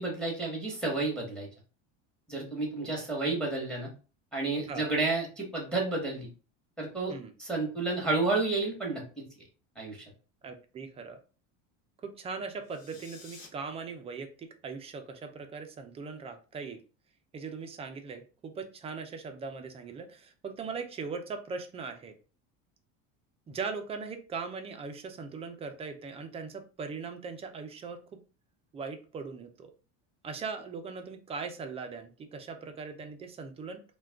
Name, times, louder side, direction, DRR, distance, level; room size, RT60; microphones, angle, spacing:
voice 1, 0.0-1.5 2.3-3.9 4.3-6.3 6.8-7.1 7.4-9.2 9.8-10.0, right 3 dB, ahead, -1 dB, 1.0 m, -31 dB
voice 2, 10.4-11.2 12.0-16.8 17.3-22.2 23.5-28.0 28.7-29.7 30.2-33.8, right 5 dB, 20° right, 5 dB, 0.3 m, -40 dB
sound 1, 12.6-13.5, left 4 dB, 90° left, 1.0 m, -51 dB
2.3 x 2.2 x 3.3 m, 0.36 s
supercardioid pair, 120°, 37 cm